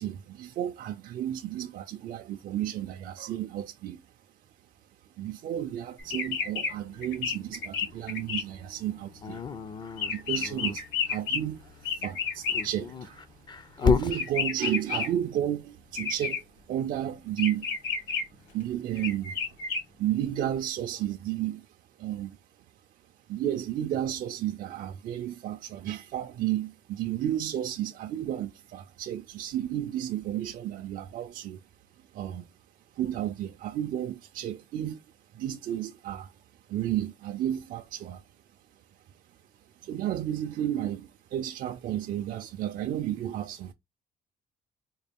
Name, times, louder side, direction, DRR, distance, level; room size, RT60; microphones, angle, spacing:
voice 1, 0.0-4.0 5.2-9.5 10.1-13.3 13.8-17.8 18.5-19.6 20.0-22.4 23.3-31.6 32.0-32.5 32.9-35.0 35.3-36.4 36.7-38.2 39.8-43.7, right 11 dB, 55° right, 0.4 m, -32 dB
sound 1, 6.0-6.7 7.0-8.4 8.8-12.7 14.1-15.1 15.9-16.4 17.4-18.2 19.0-19.8, left 6 dB, 80° left, 1.8 m, -31 dB
Dog, 9.2-10.8 12.4-14.2, left 5 dB, 25° left, 0.4 m, -29 dB
3.9 x 2.2 x 3.5 m
cardioid pair, 110°, 17 cm